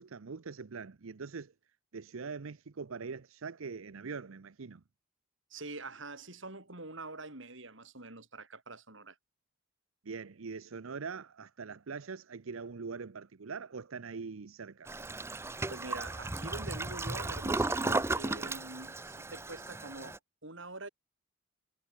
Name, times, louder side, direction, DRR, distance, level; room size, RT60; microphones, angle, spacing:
voice 1, 0.0-1.5 1.9-4.8 10.0-14.9, right 5 dB, 90° right, 0.7 m, -42 dB
voice 2, 5.5-9.2 15.7-20.9, right 2 dB, 70° right, 5.1 m, -45 dB
Toilet flush, 14.9-20.2, right 2 dB, 10° right, 0.5 m, -35 dB
head